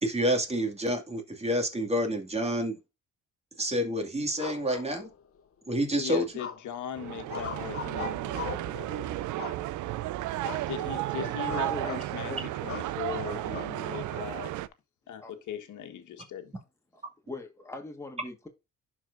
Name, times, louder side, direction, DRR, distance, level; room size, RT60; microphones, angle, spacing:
voice 1, 0.0-2.8 3.6-5.1 5.7-6.3, equal, 20° right, 2.3 m, -28 dB
sound 1, 4.4-5.4 6.4-6.9 7.3-8.7 9.4-10.0 10.4-10.7 11.0-11.2 11.5-12.1 12.7-12.9 13.5-14.2, left 7 dB, 50° left, 0.9 m, -39 dB
voice 2, 6.0-9.3 10.7-12.3 12.6-14.5 15.1-16.5, left 9 dB, 75° left, 1.5 m, -39 dB
sound 2, 7.0-14.7, right 15 dB, 75° right, 0.5 m, -33 dB
voice 3, 11.1-12.4 15.2-15.3 16.9-18.5, left 2 dB, 10° left, 1.6 m, -41 dB
11.5 x 4.8 x 2.6 m
cardioid pair, 90°, 30 cm